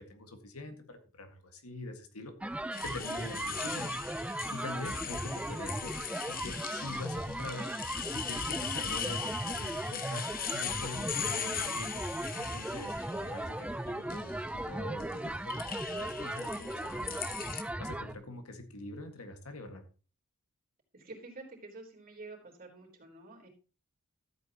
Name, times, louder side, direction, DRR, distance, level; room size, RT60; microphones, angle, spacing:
voice 1, 0.0-3.9 4.5-6.0 6.3-7.8 8.1-17.2 17.8-19.8, left 2 dB, 80° left, 6 dB, 1.9 m, -44 dB
sound 1, 2.4-18.1, right 1 dB, 5° right, 0.4 m, -37 dB
sound 2, 2.7-13.3 13.9-14.4 15.0-17.6, left 8 dB, 40° left, 1.0 m, -40 dB
voice 2, 20.9-23.5, right 3 dB, 45° right, 0 dB, 3.7 m, -49 dB
14.0 x 8.4 x 2.9 m, 0.35 s
head